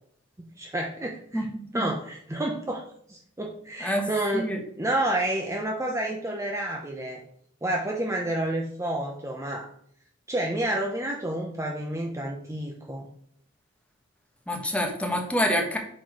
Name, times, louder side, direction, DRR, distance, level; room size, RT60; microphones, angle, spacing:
voice 1, 0.6-1.4 1.7-2.8 3.1-4.4 4.8-7.2 7.6-9.7 10.3-13.1, right 1 dB, 15° right, 0 dB, 0.7 m, -29 dB
voice 2, 1.3-1.9 3.8-4.6 14.5-15.8, equal, 5° left, 1 dB, 1.2 m, -27 dB
6.2 x 4.3 x 4.8 m, 0.67 s
head